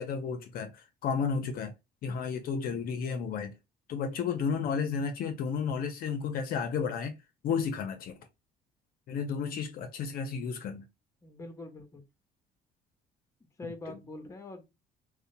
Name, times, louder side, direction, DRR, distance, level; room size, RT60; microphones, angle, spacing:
voice 1, 0.0-1.7 2.0-3.5 3.9-7.2 7.4-8.2 9.1-10.9 13.6-14.0, left 6 dB, 60° left, 0.5 m, -32 dB
voice 2, 11.2-12.0 13.6-14.7, left 2 dB, 20° left, 0.6 m, -44 dB
2.7 x 2.1 x 2.5 m
cardioid pair, 110°, 17 cm